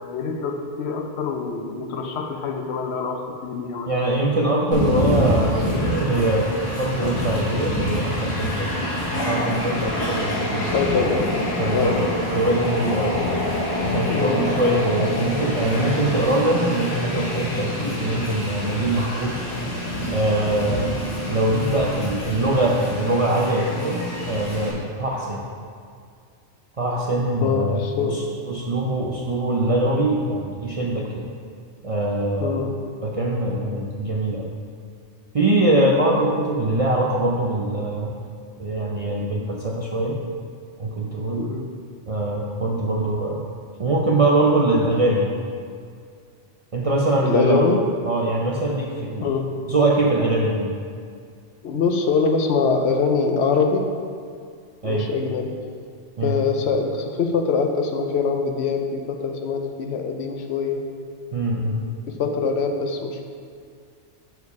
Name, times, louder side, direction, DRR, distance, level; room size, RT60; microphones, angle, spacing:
voice 1, 0.0-3.9 10.7-11.3 11.7-12.0 14.1-14.4 27.4-28.2 32.4-32.7 41.4-41.7 47.2-47.8 49.2-49.5 51.6-53.9 54.8-55.5 56.2-60.8 62.1-63.2, left 5 dB, 65° left, 4 dB, 0.8 m, -24 dB
voice 2, 3.9-10.8 11.6-12.0 12.3-13.3 13.8-19.4 20.1-20.9 21.3-24.0 24.3-25.4 26.8-31.3 31.8-32.7 33.0-34.5 35.3-38.1 38.6-40.2 40.8-41.4 42.1-43.4 43.8-45.4 46.7-47.7 48.0-49.3 49.7-50.8 54.8-55.1 56.2-56.3 61.3-61.8, right 1 dB, 45° right, -2 dB, 0.4 m, -23 dB
Train, 4.7-24.7, left 1 dB, 85° left, 1.8 m, -26 dB
6.8 x 4.7 x 4.7 m, 2.2 s
omnidirectional pair, 1.2 m